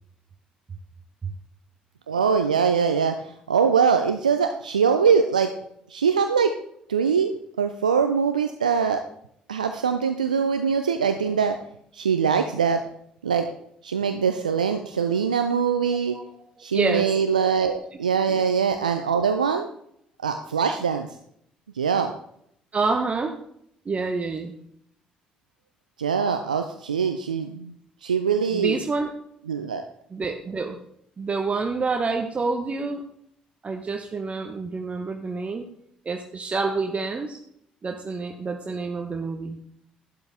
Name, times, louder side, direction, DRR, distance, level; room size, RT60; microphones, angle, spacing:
voice 1, 2.1-5.5 5.9-6.5 6.9-9.0 9.5-11.6 11.9-12.8 13.2-13.5 13.8-16.2 16.6-19.7 20.2-21.1 21.7-22.1 26.0-27.7 28.0-28.8 29.5-29.8, right 6 dB, 85° right, 7 dB, 0.5 m, -23 dB
voice 2, 16.7-17.1 18.3-18.4 22.7-23.4 23.8-24.5 28.5-29.1 30.1-30.8 31.2-33.0 33.6-35.6 36.0-37.4 37.8-39.6, right 4 dB, 30° right, 4 dB, 1.0 m, -27 dB
11.5 x 10.5 x 3.5 m, 0.71 s
figure-of-eight pair, 50°, 4 cm